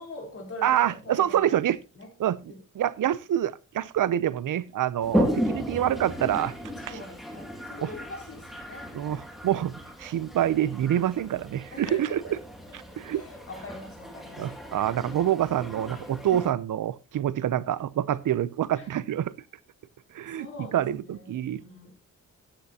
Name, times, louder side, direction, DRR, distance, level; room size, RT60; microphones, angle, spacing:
voice 1, 0.0-1.6 1.9-2.1 2.5-2.6 6.8-8.9 11.7-12.4 12.7-14.7 18.7-18.9 20.3-22.0, left 2 dB, 45° left, 3.9 m, -43 dB
voice 2, 0.6-1.8 2.2-2.4 2.8-6.5 7.8-7.9 8.9-12.2 12.7-13.2 14.4-19.3 20.1-21.6, right 11 dB, 80° right, 0.6 m, -26 dB
Toilet flush, 5.0-16.5, equal, ahead, 2.3 m, -34 dB
14.0 x 9.6 x 2.8 m
wide cardioid pair, 120°, 31 cm